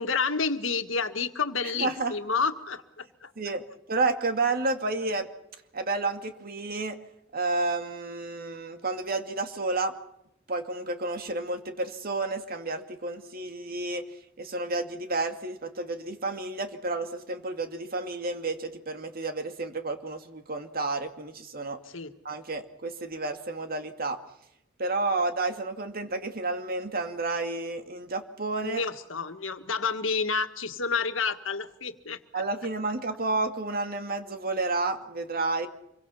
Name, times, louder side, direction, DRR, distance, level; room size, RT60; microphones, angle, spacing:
voice 1, 0.0-3.3 21.9-22.1 28.6-32.4, left 5 dB, 80° left, 8 dB, 1.8 m, -30 dB
voice 2, 1.8-2.1 3.4-5.3 5.7-7.0 7.3-9.9 10.5-14.1 14.4-21.8 22.2-24.2 24.8-28.8 32.3-35.7, right 3 dB, 50° right, 7 dB, 2.3 m, -31 dB
26.5 x 23.5 x 5.8 m, 0.80 s
head